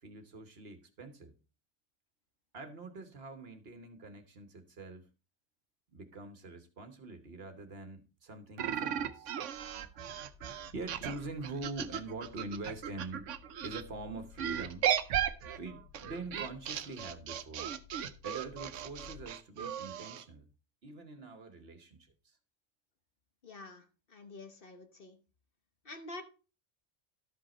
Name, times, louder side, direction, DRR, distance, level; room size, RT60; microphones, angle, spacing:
voice 1, 0.0-1.3 2.5-5.1 5.9-9.4 10.7-15.2 15.6-17.8 18.2-20.5 20.8-22.4, right 3 dB, 55° right, 1.4 m, -45 dB
sound 1, 8.6-13.8 14.4-20.2, right 9 dB, 90° right, 1.0 m, -36 dB
sound 2, 9.5-19.3, left 8 dB, 80° left, 1.2 m, -57 dB
voice 2, 23.4-23.8 24.1-25.2 25.8-26.2, left 2 dB, 50° left, 1.3 m, -47 dB
12.5 x 5.3 x 4.2 m
omnidirectional pair, 1.2 m